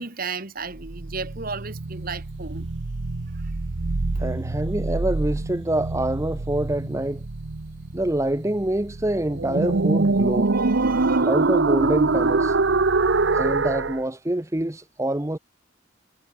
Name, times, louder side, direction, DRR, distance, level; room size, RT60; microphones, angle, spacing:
voice 1, 0.0-2.7 3.3-3.4 4.1-4.2 10.5-11.3 12.9-13.1, right 4 dB, 45° right, 2.4 m, -35 dB
sound 1, 0.7-14.0, right 3 dB, 65° right, 0.9 m, -24 dB
voice 2, 4.2-7.2 7.9-10.5 11.2-12.6 13.3-15.4, right 1 dB, 15° right, 0.8 m, -26 dB
head